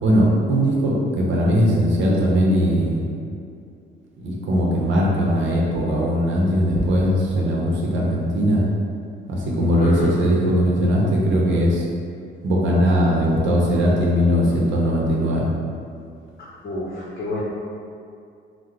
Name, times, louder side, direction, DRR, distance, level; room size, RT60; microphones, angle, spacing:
voice 1, 0.0-3.1 4.2-8.6 9.3-11.8 12.4-15.5, equal, 75° right, -3 dB, 0.7 m, -19 dB
voice 2, 9.8-10.1 16.4-17.4, left 1 dB, 50° left, -6 dB, 0.7 m, -30 dB
3.6 x 2.1 x 3.1 m, 2.4 s
cardioid pair, 90°, 20 cm